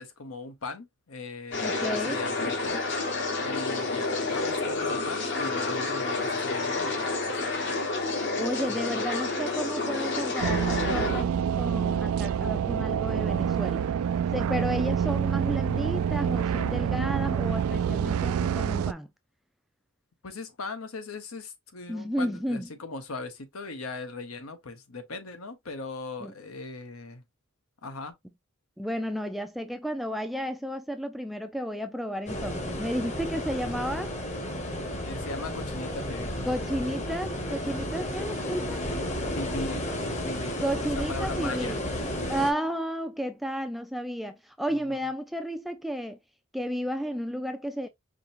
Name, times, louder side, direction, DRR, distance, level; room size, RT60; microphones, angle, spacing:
voice 1, 0.0-2.8 3.4-7.5 8.7-9.0 20.2-27.2 27.8-28.1 33.3-33.6 35.0-36.4 39.3-40.6 40.9-41.8 42.2-42.4 44.7-45.1, left 3 dB, 75° left, 1.0 m, -39 dB
sound 1, 1.5-11.2, left 3 dB, 55° left, 1.3 m, -29 dB
voice 2, 1.6-2.2 8.4-13.9 14.3-19.1 21.9-22.7 26.2-26.3 28.8-34.2 36.5-38.8 40.6-41.9 42.3-46.2 46.5-47.9, equal, ahead, 0.3 m, -32 dB
sound 2, 10.4-18.9, right 8 dB, 85° right, 0.3 m, -27 dB
sound 3, 32.3-42.5, left 1 dB, 35° left, 1.1 m, -32 dB
5.0 x 2.8 x 2.6 m
head